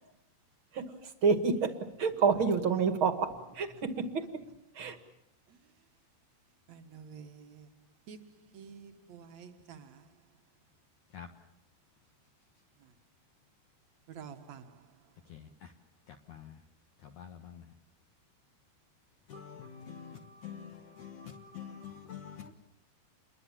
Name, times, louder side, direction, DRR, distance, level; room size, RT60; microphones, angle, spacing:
voice 1, 0.7-1.7 2.0-4.2 4.8-5.0, right 5 dB, 40° right, 2.0 m, -28 dB
voice 2, 6.7-7.7 8.1-8.2 8.5-9.9 14.2-14.6, right 7 dB, 55° right, 2.1 m, -48 dB
voice 3, 15.3-15.7 16.1-16.6 17.0-17.7 19.3-22.5, left 7 dB, 60° left, 2.4 m, -47 dB
28.5 x 22.5 x 7.4 m
omnidirectional pair, 4.8 m